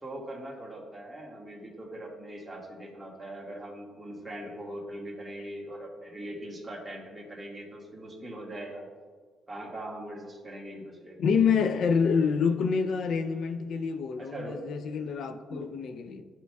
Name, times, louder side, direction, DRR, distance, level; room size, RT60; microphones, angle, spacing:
voice 1, 0.0-8.9 9.5-11.4 14.2-14.6 15.1-15.6, right 1 dB, 15° right, 1.7 m, -41 dB
voice 2, 11.2-16.2, left 6 dB, 65° left, 0.5 m, -27 dB
11.5 x 4.4 x 2.3 m
cardioid pair, 90°, 0 cm